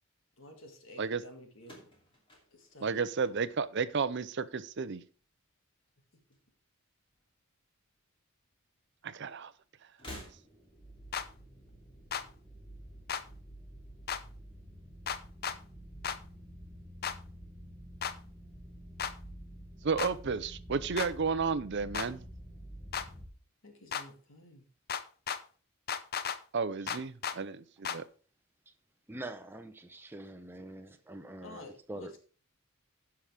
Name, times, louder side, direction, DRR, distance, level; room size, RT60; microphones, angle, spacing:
voice 1, 0.4-1.9 2.5-3.0 3.3-3.4 23.6-24.7 31.4-32.2, left 1 dB, 65° left, 2.0 m, -51 dB
sound 1, 1.6-3.9 4.2-4.8 5.9-6.9 7.1-7.3 8.4-8.5 9.9-10.9, equal, 25° left, 2.7 m, -51 dB
voice 2, 2.8-5.0 9.0-9.5 19.8-22.2 26.5-28.0, right 5 dB, 55° right, 0.6 m, -32 dB
sound 2, 10.0-23.3, equal, 5° left, 1.4 m, -50 dB
sound 3, 11.1-11.3 12.1-12.3 13.1-13.2 14.1-14.2 15.1-15.6 16.0-16.2 17.0-17.2 18.0-18.2 19.0-19.1 20.0-20.1 21.0-21.1 21.9-22.1 22.9-23.1 23.9-24.1 24.9-25.4 25.9-26.4 26.9-27.4 27.8-28.0, left 7 dB, 45° left, 0.6 m, -34 dB
voice 3, 29.1-32.1, right 1 dB, 10° right, 0.8 m, -45 dB
15.5 x 5.8 x 3.4 m
head